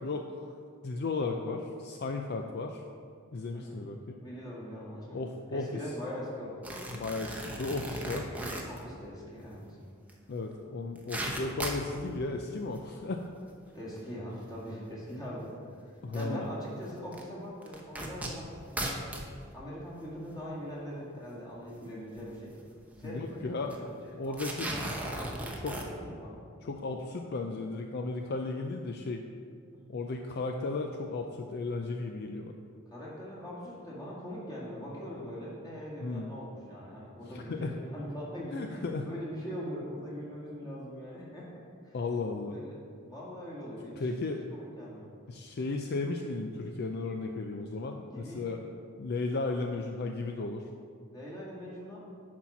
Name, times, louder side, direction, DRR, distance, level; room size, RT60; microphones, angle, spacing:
voice 1, 0.0-0.4 0.8-2.8 3.3-4.2 5.1-5.8 6.9-8.4 10.3-13.2 16.0-16.5 23.0-23.7 24.1-24.7 25.6-25.8 26.6-29.2 29.9-32.6 36.0-36.3 37.3-37.7 38.5-39.1 41.9-42.6 44.0-44.4 45.3-48.6 49.0-50.7, left 3 dB, 50° left, 4 dB, 0.4 m, -35 dB
voice 2, 3.5-3.8 4.2-5.2 5.5-6.5 8.7-9.8 13.7-15.5 16.1-19.0 19.5-22.5 23.0-23.9 24.2-26.4 29.7-30.0 32.9-41.5 41.8-42.0 42.4-42.8 43.1-44.1 44.5-45.1 48.1-48.6 51.1-52.0, equal, 20° left, -7 dB, 2.3 m, -41 dB
sound 1, 6.6-8.8 10.1-10.2 10.5-10.6 10.8-11.9 12.6-12.9 13.5-13.6 14.7-14.8 16.1-16.2 17.1-17.2 17.6-19.3 20.0-20.1 20.3-20.5 22.1-22.3 22.6-22.7 22.9-23.2 23.7-23.8 24.3-25.8, right 1 dB, 5° right, 0.8 m, -37 dB
10.0 x 4.3 x 5.8 m, 2.3 s
head